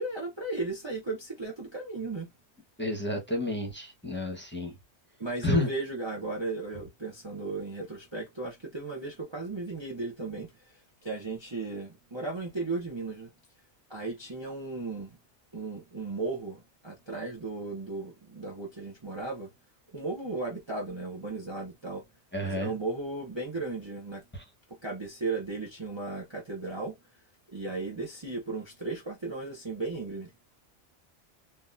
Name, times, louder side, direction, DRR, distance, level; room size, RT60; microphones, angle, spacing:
voice 1, 0.0-2.3 5.2-13.3 13.9-15.2 15.5-19.5 19.9-22.0 22.4-24.2 24.8-26.9 27.5-30.3, right 3 dB, 25° right, 0.8 m, -35 dB
voice 2, 2.8-4.7 5.4-5.7 22.3-22.7, left 1 dB, 10° left, 1.1 m, -30 dB
3.7 x 2.9 x 2.5 m
omnidirectional pair, 1.3 m